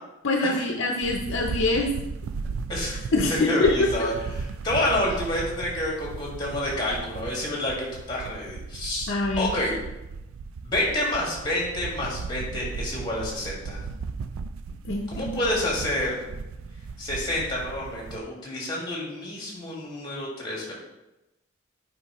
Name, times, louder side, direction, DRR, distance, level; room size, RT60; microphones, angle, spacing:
voice 1, 0.2-1.9 3.1-3.9 9.1-9.5 14.9-15.4, left 2 dB, 65° left, 1 dB, 0.6 m, -24 dB
sound 1, 1.0-18.2, right 4 dB, 85° right, 0.3 m, -36 dB
voice 2, 2.7-3.0 3.3-9.8 10.6-13.8 15.1-16.3 17.0-20.7, left 1 dB, 20° left, -3 dB, 1.8 m, -29 dB
8.3 x 5.2 x 3.0 m, 0.95 s
head